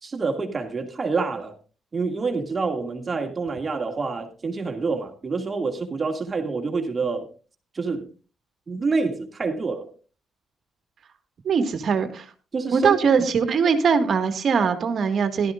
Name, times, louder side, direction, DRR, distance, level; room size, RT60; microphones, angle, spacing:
voice 1, 0.0-1.6 1.9-7.3 7.7-8.1 8.7-9.9 12.5-12.9, right 4 dB, 30° right, 2.4 m, -27 dB
voice 2, 11.4-12.3 12.7-15.5, right 6 dB, 55° right, 1.9 m, -21 dB
17.0 x 13.0 x 2.6 m
cardioid pair, 90°, 0 cm